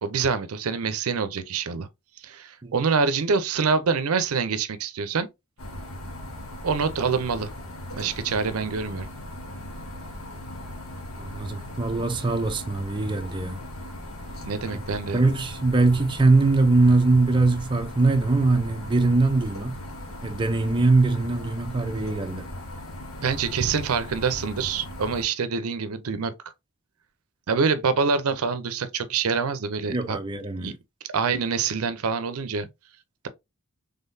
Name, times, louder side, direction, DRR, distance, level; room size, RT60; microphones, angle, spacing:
voice 1, 0.0-1.9 2.2-5.3 6.6-7.5 7.9-9.1 14.4-15.2 23.2-26.3 27.5-30.2 30.6-30.7 31.1-32.7, right 5 dB, 75° right, 0.5 m, -26 dB
sound 1, 5.6-25.3, left 1 dB, 75° left, 1.1 m, -38 dB
voice 2, 11.2-13.6 15.1-19.8 20.2-22.4 29.9-30.8, right 3 dB, 20° right, 0.5 m, -22 dB
3.8 x 3.4 x 2.6 m
head